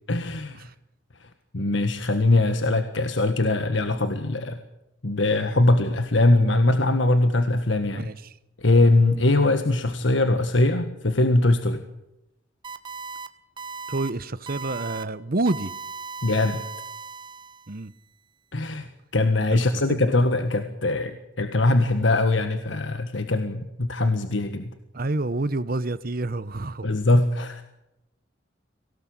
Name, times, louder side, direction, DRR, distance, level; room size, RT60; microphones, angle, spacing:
voice 1, 0.1-0.7 1.2-1.3 1.5-4.6 5.0-8.1 8.6-11.8 16.2-16.6 18.5-24.7 26.8-27.6, left 2 dB, 70° left, 1.6 m, -22 dB
voice 2, 7.9-8.3 13.9-15.7 17.7-17.9 19.7-20.0 24.9-26.9, right 2 dB, 50° right, 0.9 m, -28 dB
sound 1, 12.6-13.3 13.6-14.1 14.5-15.0 15.5-17.8, right 4 dB, 25° right, 1.3 m, -37 dB
24.0 x 18.0 x 8.8 m
head